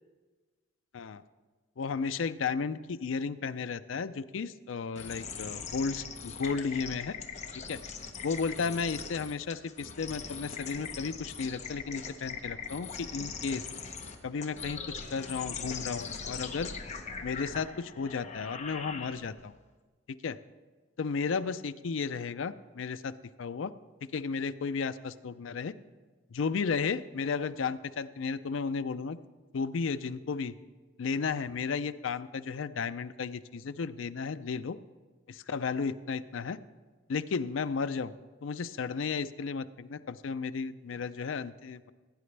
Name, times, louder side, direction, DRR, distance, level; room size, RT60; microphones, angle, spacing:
voice 1, 1.8-7.1 7.7-7.8 8.2-13.6 14.2-14.8 15.1-16.7 17.2-19.5 20.2-20.4 21.0-23.1 23.4-23.7 24.1-25.7 26.3-29.2 29.5-30.5 31.0-34.8 35.3-36.6 37.1-38.1 38.4-41.9, left 5 dB, 80° left, 13 dB, 0.5 m, -33 dB
sound 1, 5.0-19.5, left 5 dB, 35° left, 0.9 m, -41 dB
17.5 x 9.4 x 3.3 m, 1.3 s
head